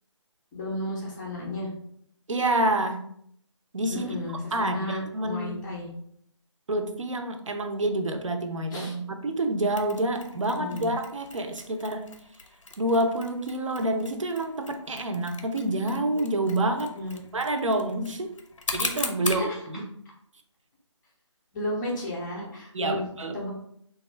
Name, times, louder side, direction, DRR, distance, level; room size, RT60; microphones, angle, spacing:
voice 1, 0.5-1.7 3.9-5.9 8.7-9.0 10.6-10.9 17.0-17.2 19.2-19.6 21.5-23.1 23.3-23.5, left 1 dB, 10° left, -8 dB, 0.4 m, -33 dB
voice 2, 2.3-3.0 3.7-4.2 4.5-5.6 6.7-12.1 12.8-16.9 17.3-18.4 18.7-19.4 19.7-19.8 22.7-23.3, right 1 dB, 80° right, 6 dB, 0.6 m, -28 dB
Mechanisms, 9.8-19.5, left 3 dB, 85° left, 0.6 m, -39 dB
3.4 x 2.3 x 3.2 m, 0.69 s
figure-of-eight pair, 150°, 16 cm